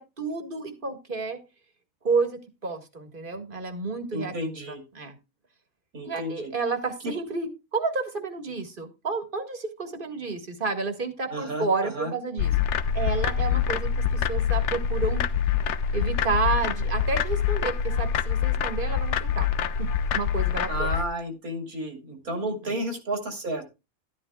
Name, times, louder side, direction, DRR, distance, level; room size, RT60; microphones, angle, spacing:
voice 1, 0.0-1.4 2.0-4.3 5.0-5.2 6.0-12.5 13.0-15.2 15.9-19.5 20.1-20.9 22.6-22.7, right 4 dB, 35° right, 7 dB, 1.8 m, -30 dB
voice 2, 4.1-4.8 5.9-6.5 7.0-7.1 11.3-12.1 20.7-23.7, right 1 dB, 85° right, 5 dB, 3.0 m, -32 dB
sound 1, 12.4-21.0, left 7 dB, 60° left, 0.9 m, -25 dB
12.5 x 12.0 x 2.3 m, 0.27 s
omnidirectional pair, 1.5 m